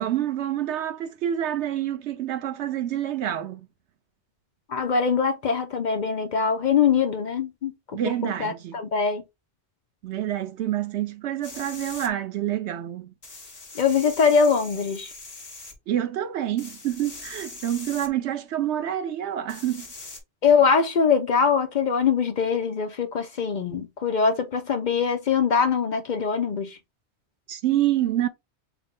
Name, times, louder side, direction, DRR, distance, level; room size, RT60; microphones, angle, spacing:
voice 1, 0.0-3.6 7.9-8.8 10.0-13.1 15.9-19.9 27.5-28.3, right 11 dB, 85° right, 1.0 m, -27 dB
voice 2, 4.7-9.2 13.7-15.1 20.4-26.8, left 6 dB, 55° left, 0.6 m, -23 dB
sound 1, 11.4-12.1 13.2-15.7 16.6-18.1 19.5-20.2, left 3 dB, 35° left, 1.3 m, -41 dB
5.9 x 2.1 x 3.7 m
omnidirectional pair, 1.1 m